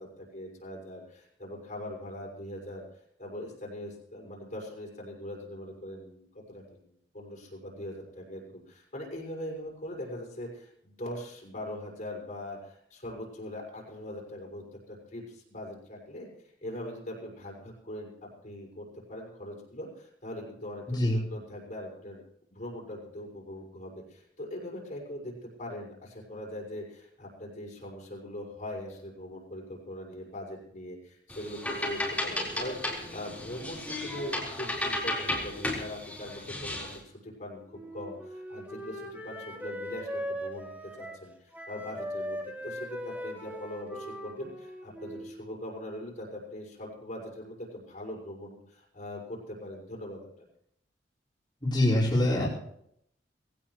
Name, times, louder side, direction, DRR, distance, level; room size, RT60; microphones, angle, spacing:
voice 1, 0.0-2.9 3.2-16.3 16.6-22.2 22.5-50.5, left 1 dB, 45° left, -2 dB, 6.1 m, -41 dB
sound 1, 31.3-37.0, left 1 dB, 10° left, 4.4 m, -34 dB
Wind instrument woodwind instrument, 37.7-41.3 41.5-45.4, equal, 10° right, 2.4 m, -39 dB
voice 2, 51.6-52.5, left 1 dB, 25° left, -9 dB, 5.2 m, -24 dB
21.5 x 17.0 x 3.2 m, 0.71 s
head